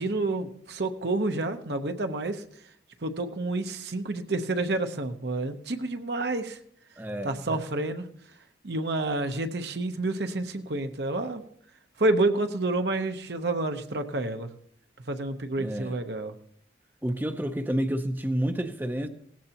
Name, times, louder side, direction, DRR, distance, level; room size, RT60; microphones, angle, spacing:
voice 1, 0.0-2.4 3.0-6.6 7.2-8.1 8.6-11.4 12.0-14.5 15.1-16.3, right 2 dB, 65° right, 7 dB, 0.9 m, -29 dB
voice 2, 7.0-7.4 15.6-16.0 17.0-19.1, right 1 dB, 10° right, 8 dB, 0.6 m, -29 dB
18.0 x 15.0 x 2.9 m, 0.66 s
head